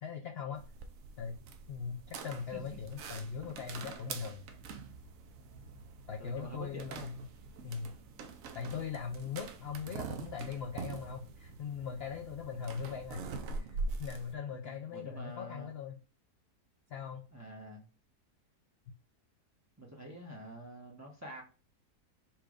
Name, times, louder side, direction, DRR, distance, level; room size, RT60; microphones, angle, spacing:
voice 1, 0.0-0.6 1.2-1.4 1.7-4.4 6.1-7.2 7.6-8.0 8.5-13.2 13.5-16.0 16.9-17.3, left 6 dB, 75° left, 3 dB, 0.5 m, -40 dB
sound 1, 0.5-14.3, right 4 dB, 70° right, 0.9 m, -44 dB
voice 2, 6.2-7.2 14.5-15.7 17.3-17.8 19.8-21.4, right 1 dB, 15° right, -2 dB, 0.7 m, -47 dB
4.4 x 2.3 x 4.8 m, 0.34 s
omnidirectional pair, 1.7 m